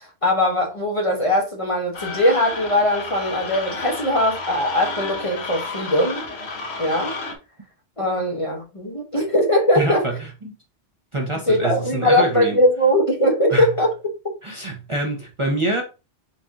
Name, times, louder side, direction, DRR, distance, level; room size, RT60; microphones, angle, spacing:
voice 1, 0.2-6.2 6.8-7.1 8.0-10.0 11.5-13.9, left 1 dB, 30° left, 0.8 m, -20 dB
sound 1, 1.9-7.4, left 3 dB, 70° left, 1.1 m, -31 dB
voice 2, 9.8-10.5 11.1-12.6 13.5-13.7 14.4-15.8, right 2 dB, 35° right, 0.7 m, -25 dB
4.1 x 2.5 x 3.5 m
omnidirectional pair, 1.1 m